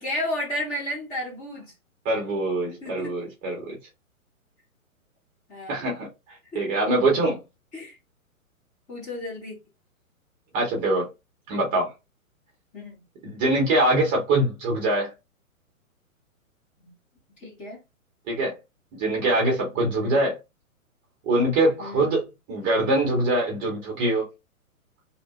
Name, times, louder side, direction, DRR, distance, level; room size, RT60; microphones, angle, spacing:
voice 1, 0.0-1.7 2.8-3.1 5.5-5.9 6.5-6.8 7.7-8.0 8.9-9.6 12.7-13.0 16.8-16.9 17.4-17.8 19.7-20.3 21.8-22.1, left 1 dB, 15° left, 0.9 m, -33 dB
voice 2, 2.0-3.8 5.7-6.1 6.5-7.4 10.5-11.0 11.5-11.9 13.2-15.1 18.3-18.5 19.0-20.4 21.2-24.2, right 2 dB, 20° right, 0.8 m, -23 dB
2.8 x 2.1 x 3.0 m
figure-of-eight pair, 125°, 43 cm